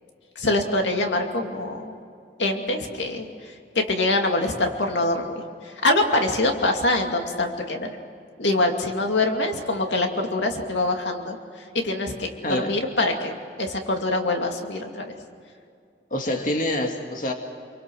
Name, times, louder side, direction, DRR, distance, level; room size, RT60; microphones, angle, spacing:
voice 1, 0.4-2.0 2.4-8.0 8.4-11.4 11.7-15.1, left 2 dB, 85° left, 3 dB, 2.5 m, -24 dB
voice 2, 16.1-17.3, left 1 dB, 45° left, 3 dB, 2.1 m, -26 dB
27.5 x 24.0 x 6.3 m, 2.3 s
head